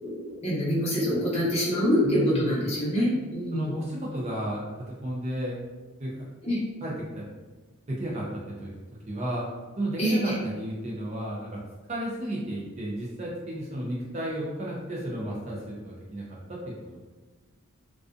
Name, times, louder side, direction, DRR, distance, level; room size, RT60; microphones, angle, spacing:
voice 1, 0.0-3.7 6.4-6.6 10.0-10.3, equal, 30° left, -8 dB, 0.8 m, -25 dB
voice 2, 2.0-2.5 3.5-5.6 6.0-6.3 6.8-7.2 7.9-8.7 9.1-9.4 9.8-11.6 11.9-17.0, right 1 dB, 30° right, -5 dB, 0.3 m, -33 dB
2.5 x 2.2 x 2.4 m, 1.3 s
head